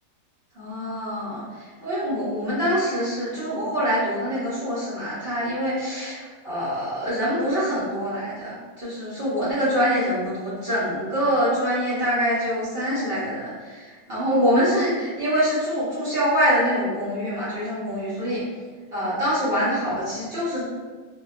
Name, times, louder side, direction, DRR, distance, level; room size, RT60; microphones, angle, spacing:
voice 1, 0.5-18.4 18.9-20.6, equal, 45° right, -11 dB, 0.9 m, -25 dB
3.8 x 2.3 x 2.4 m, 1.4 s
omnidirectional pair, 1.9 m